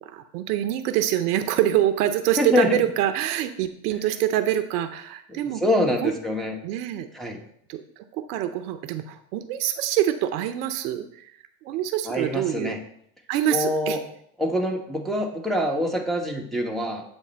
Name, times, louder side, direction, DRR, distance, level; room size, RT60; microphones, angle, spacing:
voice 1, 0.0-5.6 6.0-6.1 6.6-7.1 7.7-11.3 11.6-12.8 13.3-14.0, right 12 dB, 80° right, 10 dB, 0.6 m, -25 dB
voice 2, 2.4-2.7 5.4-6.5 7.1-7.4 12.1-12.8 13.5-14.0 14.4-17.0, left 1 dB, ahead, 0 dB, 1.1 m, -25 dB
8.3 x 3.2 x 4.3 m, 0.68 s
hypercardioid pair, 75°, 46 cm